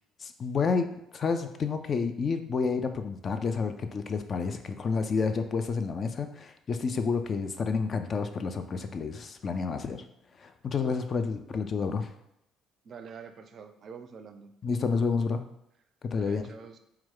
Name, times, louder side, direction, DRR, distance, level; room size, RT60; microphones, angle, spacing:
voice 1, 0.2-10.0 10.4-12.1 14.6-15.4 16.0-16.5, left 5 dB, 40° left, 8 dB, 0.3 m, -30 dB
voice 2, 12.8-14.5 16.1-16.8, right 5 dB, 50° right, 8 dB, 0.4 m, -46 dB
4.3 x 2.3 x 3.6 m, 0.81 s
figure-of-eight pair, 50°, 0 cm